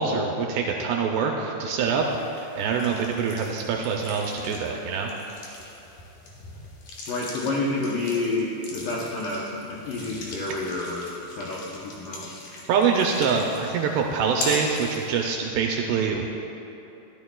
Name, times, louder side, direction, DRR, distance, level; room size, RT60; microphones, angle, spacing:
voice 1, 0.0-2.1 2.3-5.1 12.7-16.3, right 6 dB, 85° right, 1 dB, 2.4 m, -25 dB
sound 1, 1.8-15.3, left 3 dB, 65° left, 2.2 m, -40 dB
voice 2, 7.1-12.3, left 2 dB, 85° left, -4 dB, 1.9 m, -29 dB
14.5 x 11.5 x 2.3 m, 2.9 s
omnidirectional pair, 5.2 m